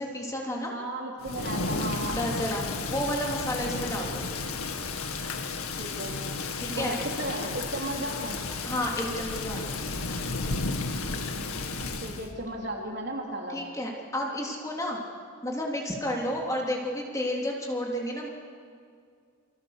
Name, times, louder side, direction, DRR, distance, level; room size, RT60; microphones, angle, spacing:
voice 1, 0.0-0.7 2.1-4.3 6.6-6.9 8.6-9.8 13.5-15.0 15.4-18.3, left 1 dB, 15° left, -2 dB, 3.4 m, -31 dB
voice 2, 0.7-2.3 5.8-6.2 6.7-8.4 12.0-13.6, right 1 dB, 50° right, 0 dB, 4.1 m, -35 dB
Thunder / Rain, 1.2-12.3, left 3 dB, 85° left, 2.2 m, -33 dB
29.5 x 26.0 x 6.8 m, 2.2 s
head